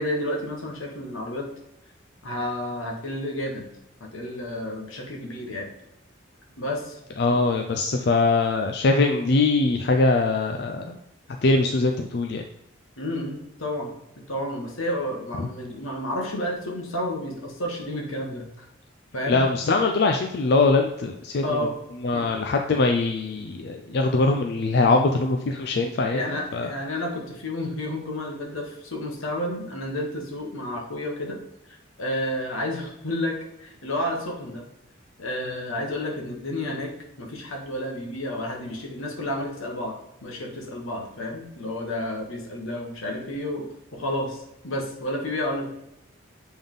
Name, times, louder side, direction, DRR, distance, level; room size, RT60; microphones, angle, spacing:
voice 1, 0.0-1.5 2.2-3.7 4.0-5.7 6.6-7.0 13.0-13.9 14.3-18.6 19.1-19.4 21.4-21.8 22.1-22.2 24.8-25.0 26.1-31.4 31.7-34.6 35.2-36.9 37.2-40.0 40.2-45.7, left 1 dB, 80° left, 1 dB, 1.4 m, -31 dB
voice 2, 7.2-11.0 11.4-12.4 15.4-15.5 19.3-21.4 22.0-26.2 26.5-26.7, left 3 dB, 55° left, 4 dB, 0.4 m, -22 dB
6.9 x 3.6 x 3.8 m, 0.86 s
head